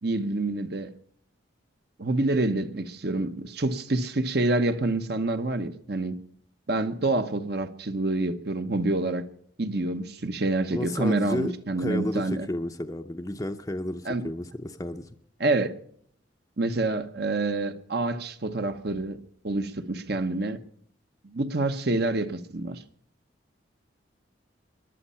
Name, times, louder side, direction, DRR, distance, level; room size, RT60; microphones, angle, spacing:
voice 1, 0.0-0.9 2.0-6.2 6.7-9.3 9.6-12.5 14.0-14.2 15.4-15.7 16.6-20.6 21.2-22.8, right 2 dB, 55° right, 1.0 m, -27 dB
voice 2, 10.7-11.5 11.8-15.1, left 1 dB, 15° left, 0.6 m, -32 dB
20.0 x 11.5 x 5.7 m
head